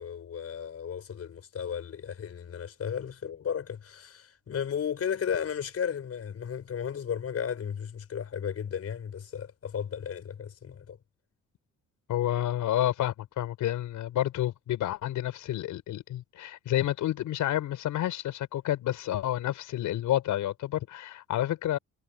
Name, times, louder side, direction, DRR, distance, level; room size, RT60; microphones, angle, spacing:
voice 1, 0.0-11.0, left 8 dB, 50° left, 4.9 m, -34 dB
voice 2, 12.1-21.8, left 13 dB, 80° left, 5.5 m, -29 dB
cardioid pair, 90°, 30 cm